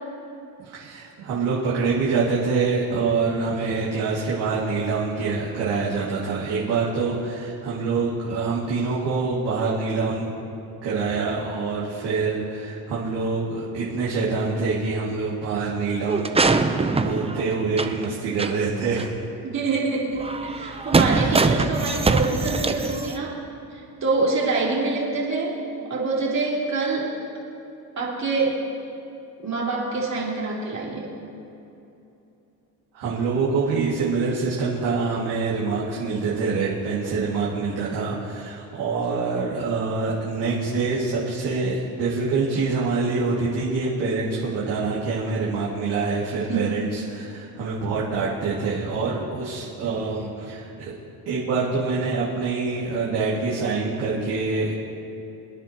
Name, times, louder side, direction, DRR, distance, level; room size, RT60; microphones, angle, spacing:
voice 1, 0.6-10.3 10.8-16.3 16.8-19.1 21.1-21.5 32.9-50.9 51.2-54.8, right 4 dB, 85° right, -7 dB, 2.3 m, -25 dB
sound 1, 16.1-18.1 18.4-18.5 19.0-19.1 20.2-23.2, right 3 dB, 15° right, 0.7 m, -22 dB
voice 2, 19.4-23.4 23.7-25.6 25.9-27.1 28.0-28.6 29.4-31.1 46.5-46.7, right 3 dB, 45° right, -5 dB, 3.4 m, -25 dB
25.0 x 9.6 x 3.0 m, 2.8 s
cardioid pair, 90°, 39 cm